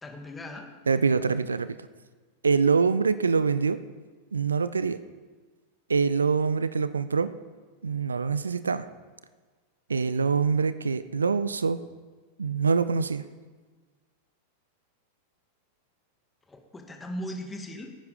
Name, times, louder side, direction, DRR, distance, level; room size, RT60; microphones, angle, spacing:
voice 1, 0.0-0.7 16.5-17.9, equal, 10° left, 3 dB, 1.9 m, -38 dB
voice 2, 0.9-1.8 2.4-3.8 4.3-5.0 5.9-7.3 7.8-8.9 9.9-11.8 12.4-13.2, right 5 dB, 75° right, 14 dB, 0.5 m, -24 dB
16.0 x 9.4 x 4.9 m, 1.4 s
figure-of-eight pair, 90°, 0 cm